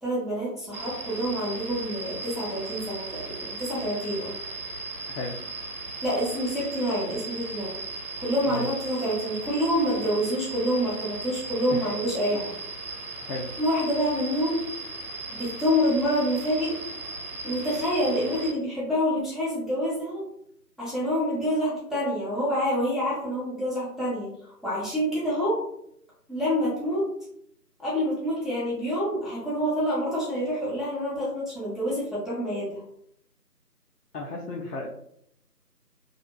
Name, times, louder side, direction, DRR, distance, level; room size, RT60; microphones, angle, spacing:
voice 1, 0.0-4.3 6.0-7.7 8.2-12.5 13.6-14.6 15.3-16.8 17.4-20.2 20.8-24.3 24.6-25.6 26.3-27.0 27.8-32.8, equal, ahead, -9 dB, 0.5 m, -27 dB
sound 1, 0.7-18.5, right 3 dB, 60° right, 0.5 m, -37 dB
voice 2, 34.1-34.9, left 3 dB, 75° left, -2 dB, 0.6 m, -34 dB
2.5 x 2.0 x 2.4 m, 0.71 s
figure-of-eight pair, 170°, 49 cm